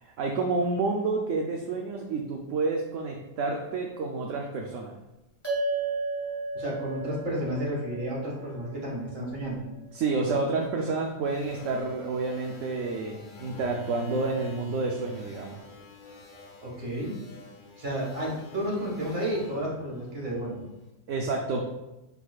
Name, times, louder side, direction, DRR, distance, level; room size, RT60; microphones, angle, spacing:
voice 1, 0.0-5.0 9.9-15.6 21.1-21.7, right 3 dB, 70° right, 1 dB, 1.0 m, -29 dB
sound 1, 5.4-10.1, right 3 dB, 10° left, 1.7 m, -35 dB
voice 2, 6.5-9.6 16.6-17.1 17.8-20.6, right 1 dB, 45° right, -4 dB, 2.0 m, -32 dB
sound 2, 11.3-20.7, equal, 45° left, 0.9 m, -45 dB
10.5 x 4.1 x 2.4 m, 0.98 s
omnidirectional pair, 1.4 m